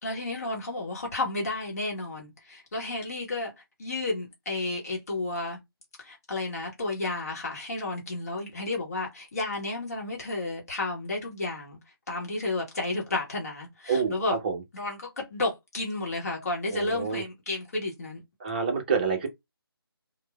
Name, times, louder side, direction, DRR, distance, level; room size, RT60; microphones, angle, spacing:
voice 1, 0.0-5.6 6.0-14.4 14.7-18.2, left 2 dB, 40° left, 1.0 m, -32 dB
voice 2, 13.9-14.6 16.7-17.2 18.4-19.3, right 5 dB, 20° right, 0.6 m, -28 dB
3.0 x 2.1 x 2.2 m
figure-of-eight pair, 155°, 13 cm